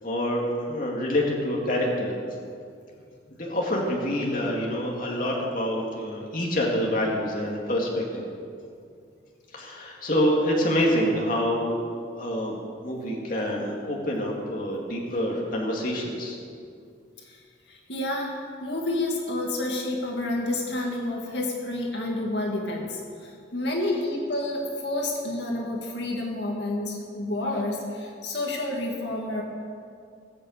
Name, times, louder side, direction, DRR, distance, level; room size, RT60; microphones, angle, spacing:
voice 1, 0.0-2.1 3.4-8.3 9.5-11.8 12.2-12.6 12.8-16.4, equal, 45° left, -2 dB, 2.1 m, -26 dB
voice 2, 17.7-29.4, left 2 dB, 65° left, -1 dB, 2.0 m, -29 dB
19.5 x 6.7 x 8.0 m, 2.3 s
head